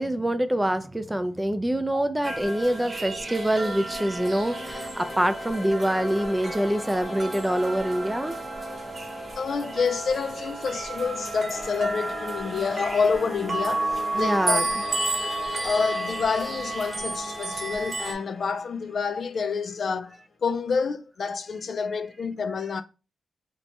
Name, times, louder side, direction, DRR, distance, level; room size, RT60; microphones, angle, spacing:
voice 1, 0.0-8.4 14.1-14.7, right 1 dB, 10° right, 0.4 m, -25 dB
sound 1, 2.2-18.1, right 2 dB, 45° right, 0.7 m, -32 dB
sound 2, 3.2-20.2, left 2 dB, 25° left, 0.8 m, -41 dB
voice 2, 9.4-14.6 15.6-22.8, left 5 dB, 65° left, 0.3 m, -28 dB
2.8 x 2.2 x 4.0 m
cardioid pair, 70°, 0 cm